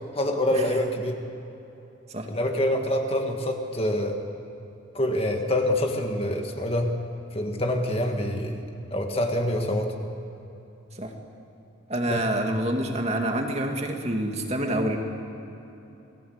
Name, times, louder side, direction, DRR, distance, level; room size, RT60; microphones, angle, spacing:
voice 1, 0.1-1.2 2.3-4.2 4.9-6.9 7.3-8.6 8.9-9.9 12.1-12.2, left 1 dB, 30° left, 3 dB, 1.9 m, -26 dB
voice 2, 11.9-15.0, right 1 dB, 30° right, 3 dB, 2.1 m, -27 dB
28.0 x 19.0 x 8.1 m, 3.0 s
head